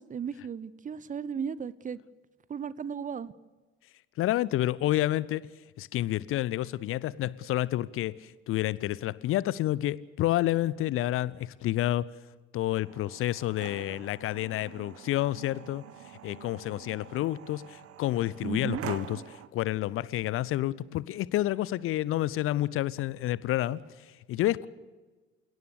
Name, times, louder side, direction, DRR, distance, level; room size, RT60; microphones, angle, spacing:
voice 1, 0.0-2.0 2.5-3.3 18.4-18.8, right 7 dB, 25° right, 19 dB, 0.7 m, -35 dB
voice 2, 4.2-5.5 5.8-12.0 12.5-15.8 16.2-23.8 24.3-24.7, left 14 dB, 40° left, 21 dB, 0.7 m, -29 dB
sound 1, 12.7-19.5, right 11 dB, 45° right, 1.4 m, -45 dB
29.0 x 17.5 x 6.7 m, 1.3 s
figure-of-eight pair, 55°, 32 cm